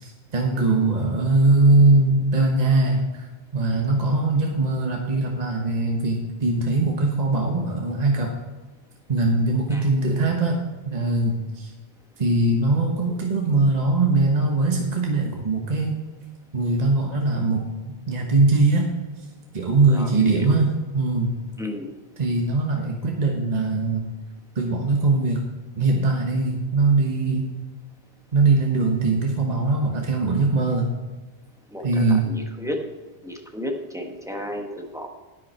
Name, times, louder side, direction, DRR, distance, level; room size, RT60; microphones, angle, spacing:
voice 1, 0.0-3.3 3.5-8.3 9.1-11.7 12.2-16.0 16.5-17.6 18.1-18.9 19.5-21.3 22.2-24.0 24.5-25.4 25.8-27.5 28.3-30.9 31.8-32.3, right 3 dB, 40° right, 0 dB, 1.3 m, -21 dB
voice 2, 0.5-0.9 9.7-10.1 19.9-20.6 21.6-21.9 31.7-32.8 33.2-35.1, left 1 dB, 5° right, 1 dB, 1.3 m, -34 dB
10.5 x 9.3 x 4.4 m, 1.3 s
omnidirectional pair, 1.1 m